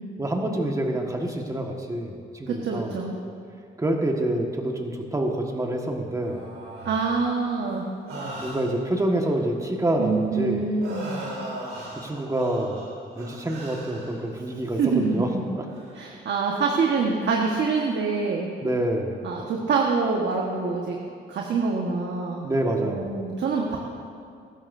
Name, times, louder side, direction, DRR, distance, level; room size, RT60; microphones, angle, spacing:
voice 1, 0.2-3.0 3.8-6.4 8.4-10.7 11.9-12.9 13.1-15.3 15.6-15.7 18.6-19.3 22.4-23.1, right 1 dB, 15° right, 1 dB, 1.6 m, -27 dB
voice 2, 2.5-3.2 6.8-7.9 10.0-11.1 14.8-15.4 15.9-18.5 19.2-21.0 21.3-22.5 22.8-23.8, right 4 dB, 60° right, -1 dB, 1.5 m, -25 dB
sound 1, 6.2-7.3 8.1-9.3 10.8-14.3 14.9-15.3 15.7-16.0 17.8-17.9, right 1 dB, 90° right, 3.6 m, -38 dB
21.0 x 12.0 x 2.7 m, 2.4 s
cardioid pair, 90°, 20 cm